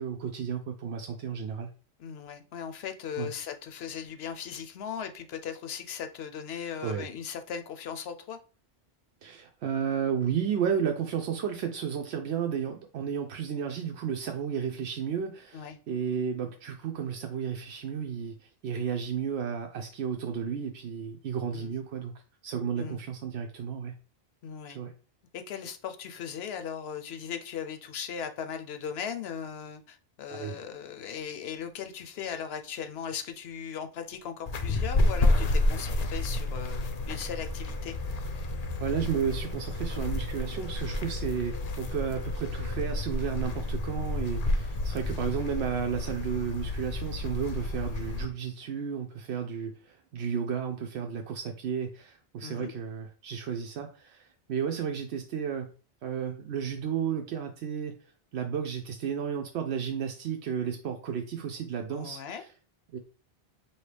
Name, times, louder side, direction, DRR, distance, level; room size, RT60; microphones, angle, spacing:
voice 1, 0.0-1.7 3.2-3.3 6.8-7.1 9.2-22.1 22.4-23.9 24.7-24.9 30.3-30.6 38.8-55.7 56.0-62.5 62.9-63.0, right 7 dB, 90° right, 0.8 m, -33 dB
voice 2, 2.0-8.4 15.5-15.8 21.5-21.7 22.8-23.0 24.4-24.8 25.3-37.9 52.4-52.7 61.9-62.4, left 8 dB, 75° left, 0.9 m, -38 dB
sound 1, 34.4-46.5, right 1 dB, 35° right, 0.4 m, -46 dB
sound 2, 34.5-48.3, left 2 dB, 50° left, 0.5 m, -30 dB
4.5 x 2.8 x 3.3 m
omnidirectional pair, 1.1 m